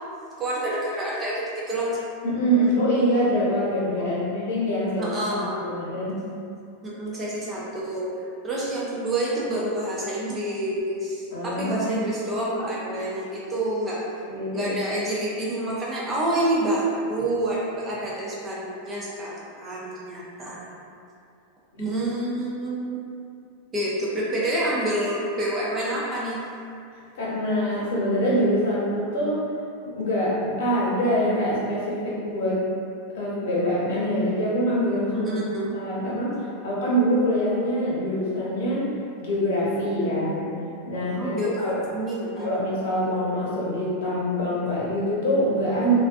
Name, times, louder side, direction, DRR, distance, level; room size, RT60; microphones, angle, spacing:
voice 1, 0.4-1.9 4.0-4.1 5.0-5.7 6.8-14.0 14.5-20.7 21.8-23.0 23.7-26.4 35.1-35.7 41.2-42.6, right 1 dB, 15° right, -6 dB, 0.3 m, -28 dB
voice 2, 2.2-6.1 11.3-11.9 14.3-14.7 21.7-21.9 27.2-29.4 29.9-32.6 33.1-35.3 35.7-38.9 39.2-40.5 40.9-41.8 42.4-46.0, equal, 65° left, -6 dB, 0.7 m, -24 dB
2.3 x 2.2 x 2.5 m, 2.4 s
supercardioid pair, 175°, 0 cm